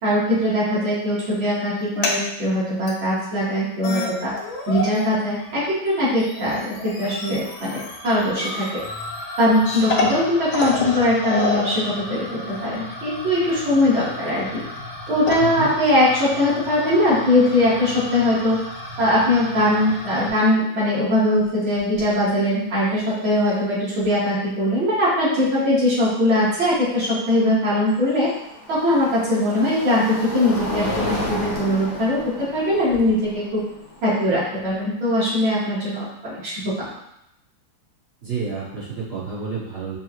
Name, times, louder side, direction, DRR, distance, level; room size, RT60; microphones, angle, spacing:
voice 1, 0.0-4.3 4.7-8.7 9.4-14.4 15.1-18.6 19.0-28.3 28.7-32.2 32.5-33.6 34.0-36.5, left 1 dB, 85° right, -10 dB, 2.6 m, -21 dB
sound 1, 1.7-2.2 2.9-3.0 3.5-3.6 3.8-5.1 5.3-20.3, left 3 dB, 85° left, 1.6 m, -30 dB
voice 2, 15.4-15.7 38.2-40.0, right 5 dB, 55° right, -7 dB, 0.7 m, -29 dB
sound 2, 21.3-21.5 21.8-22.2 24.0-24.1 27.1-35.2, left 2 dB, 55° left, 1.1 m, -33 dB
5.6 x 3.0 x 2.4 m, 0.79 s
omnidirectional pair, 2.2 m